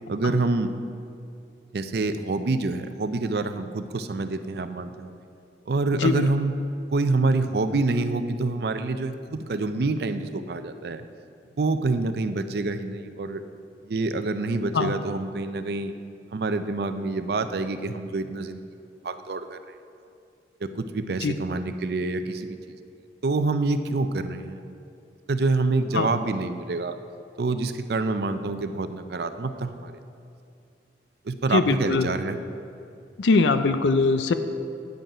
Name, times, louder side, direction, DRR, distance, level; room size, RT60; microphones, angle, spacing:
voice 1, 0.1-0.7 1.7-5.2 5.7-6.5 6.9-11.1 11.6-13.4 13.9-15.9 16.3-18.6 19.0-19.8 20.6-22.6 23.2-24.7 25.3-27.0 27.4-30.0 31.3-32.4, right 3 dB, 60° right, 9 dB, 0.5 m, -27 dB
voice 2, 5.9-6.3 14.7-14.9 21.2-21.3 25.9-26.1 31.5-32.1 33.2-34.3, left 4 dB, 85° left, 10 dB, 0.5 m, -21 dB
9.1 x 7.8 x 4.9 m, 2.5 s
head